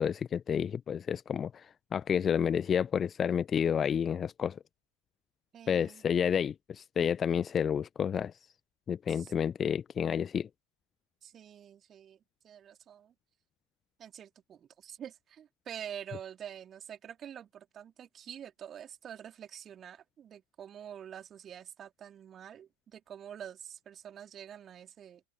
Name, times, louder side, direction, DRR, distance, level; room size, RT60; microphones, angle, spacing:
voice 1, 0.0-4.6 5.7-8.3 8.9-10.5, left 8 dB, 20° left, 1.0 m, -30 dB
voice 2, 5.5-6.0 9.1-9.3 11.2-13.1 14.0-25.2, right 9 dB, 25° right, 4.2 m, -47 dB
figure-of-eight pair, 90°, 0 cm